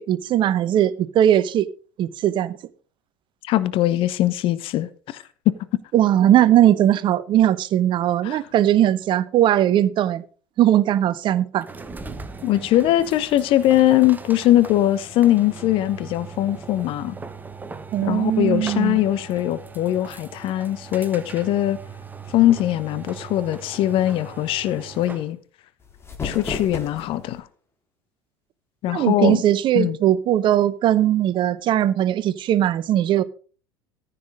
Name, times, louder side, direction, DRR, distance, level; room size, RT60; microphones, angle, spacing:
voice 1, 0.0-1.7 2.0-2.6 5.9-10.2 10.6-11.7 17.9-19.0 28.9-33.2, right 11 dB, 40° right, 0.9 m, -19 dB
voice 2, 3.4-5.5 8.2-8.4 12.4-17.2 18.0-21.8 22.3-25.4 26.2-27.5 28.8-29.4 29.7-30.0, left 13 dB, 45° left, 0.9 m, -21 dB
sound 1, 11.6-25.3, right 4 dB, 15° right, 1.4 m, -39 dB
sound 2, 25.8-27.4, left 4 dB, 20° left, 2.2 m, -33 dB
14.5 x 6.8 x 5.1 m
figure-of-eight pair, 75°, 13 cm